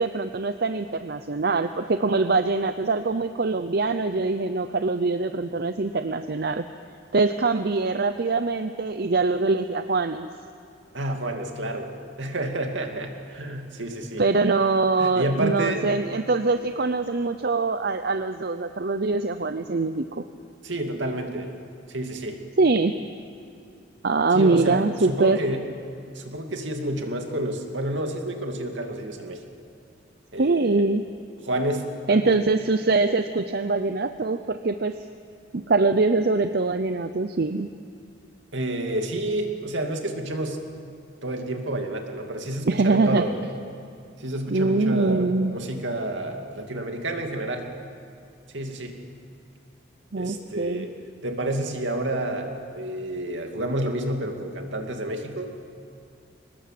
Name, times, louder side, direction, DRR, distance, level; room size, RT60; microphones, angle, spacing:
voice 1, 0.0-6.6 7.1-10.3 14.2-20.2 22.6-23.0 24.0-25.4 30.4-31.0 32.1-35.0 35.5-37.7 42.6-43.2 44.5-45.5 50.1-50.9, right 3 dB, 55° right, 9 dB, 0.7 m, -23 dB
voice 2, 10.9-14.2 15.0-15.9 20.6-21.5 21.9-22.4 24.3-25.6 26.1-29.4 30.3-30.8 31.4-32.4 38.5-40.6 41.2-43.3 44.2-47.7 48.5-49.0 50.2-50.9 51.2-52.5 52.8-55.5, right 1 dB, 75° right, 3 dB, 2.6 m, -29 dB
24.0 x 19.5 x 7.6 m, 2.5 s
head